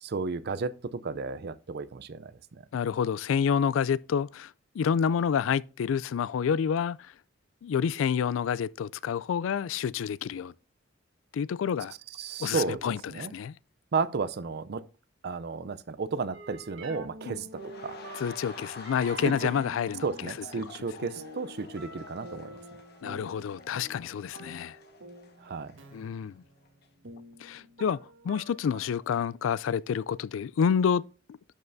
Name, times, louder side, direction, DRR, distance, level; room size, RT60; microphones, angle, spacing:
voice 1, 0.0-2.6 12.2-13.3 13.9-14.8 15.2-17.5 17.8-18.0 19.2-19.3 20.0-22.5 25.4-25.7, right 4 dB, 55° right, 0.5 m, -33 dB
voice 2, 2.7-7.0 7.6-10.5 11.3-11.9 12.4-13.5 17.3-17.4 18.1-20.6 23.0-24.8 25.9-26.4 27.4-28.0 28.2-31.0 31.3-31.4, left 7 dB, 80° left, 0.3 m, -28 dB
sound 1, 16.3-29.0, right 1 dB, 70° right, 1.4 m, -47 dB
sound 2, 17.5-26.3 26.7-26.9, left 4 dB, 55° left, 1.4 m, -49 dB
12.0 x 5.5 x 2.6 m
head